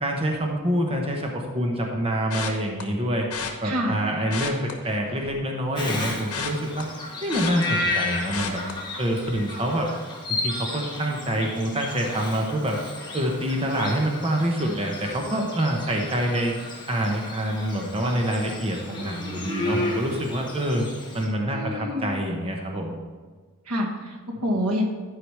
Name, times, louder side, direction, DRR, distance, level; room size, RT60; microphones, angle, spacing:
voice 1, 0.0-3.3 3.6-6.9 7.2-8.6 9.0-9.9 10.3-12.8 13.1-16.5 16.9-20.8 21.1-23.0, right 1 dB, 25° right, 1 dB, 1.0 m, -26 dB
sound 1, 2.3-2.8 3.3-3.5 4.2-5.5 5.8-8.0 8.3-8.7 9.2-9.5 9.7-9.8, left 6 dB, 90° left, 1.2 m, -33 dB
voice 2, 3.6-4.0 21.5-22.1 23.6-24.8, equal, 90° right, -1 dB, 1.7 m, -27 dB
Bird vocalization bird call bird song, 5.8-21.3, left 2 dB, 20° left, 1.6 m, -33 dB
11.0 x 4.9 x 4.8 m, 1.5 s
head